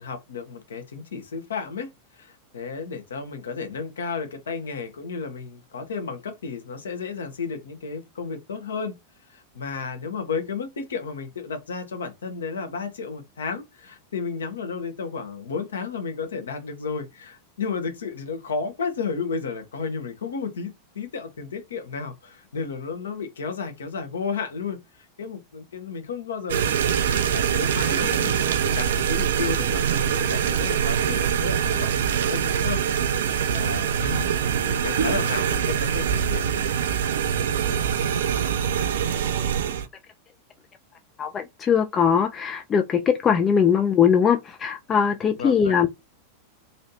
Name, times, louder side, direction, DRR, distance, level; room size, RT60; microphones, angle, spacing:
voice 1, 0.0-8.9 9.3-32.8 33.4-34.3 34.6-36.7 45.4-45.7, left 5 dB, 65° left, 0.9 m, -33 dB
sound 1, 26.5-39.9, right 8 dB, 60° right, 0.4 m, -24 dB
voice 2, 41.2-45.9, left 7 dB, 25° left, 0.4 m, -21 dB
3.2 x 2.7 x 2.7 m
figure-of-eight pair, 90°, 0 cm